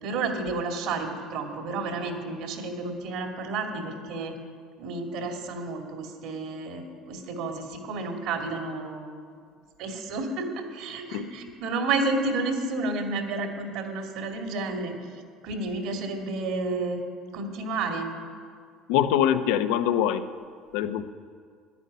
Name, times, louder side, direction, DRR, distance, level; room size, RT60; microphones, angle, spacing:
voice 1, 0.0-4.3 4.8-9.2 9.8-10.5 10.7-15.0 15.4-17.0 17.3-18.1, right 3 dB, 70° right, 3 dB, 2.4 m, -31 dB
voice 2, 18.9-20.3 20.7-21.0, left 10 dB, 85° left, 10 dB, 0.7 m, -24 dB
11.0 x 10.5 x 9.3 m, 2.1 s
cardioid pair, 140°, 0 cm